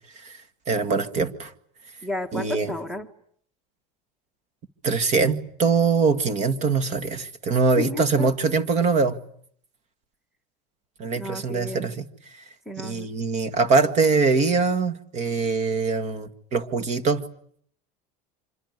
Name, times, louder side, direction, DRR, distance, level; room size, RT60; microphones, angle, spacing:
voice 1, 0.7-1.5 2.3-2.7 4.8-9.2 11.0-12.1 12.8-17.3, right 4 dB, 35° right, 12 dB, 1.8 m, -23 dB
voice 2, 2.0-3.1 7.8-8.3 11.1-12.0 12.6-13.1, left 2 dB, ahead, 11 dB, 1.4 m, -33 dB
26.0 x 23.0 x 9.5 m, 0.63 s
cardioid pair, 160°, 19 cm